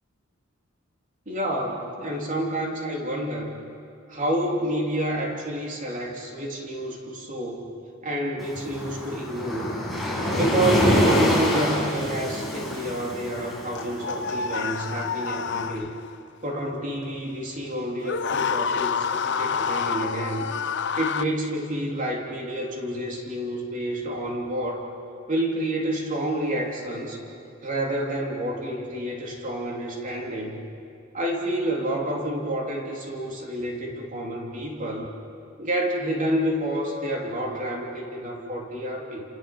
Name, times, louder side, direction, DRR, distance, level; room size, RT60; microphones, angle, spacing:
voice 1, 1.3-3.6 4.1-7.7 8.0-9.8 10.3-15.9 16.4-20.5 21.0-24.8 25.3-27.2 27.6-30.6 31.1-35.1 35.6-39.2, right 1 dB, 40° right, -1 dB, 3.4 m, -29 dB
Waves surf, 8.4-15.5, left 1 dB, ahead, 6.4 m, -26 dB
sound 1, 13.8-16.2 18.0-21.2, left 6 dB, 60° left, 0.8 m, -28 dB
29.5 x 29.0 x 6.2 m, 2.6 s
head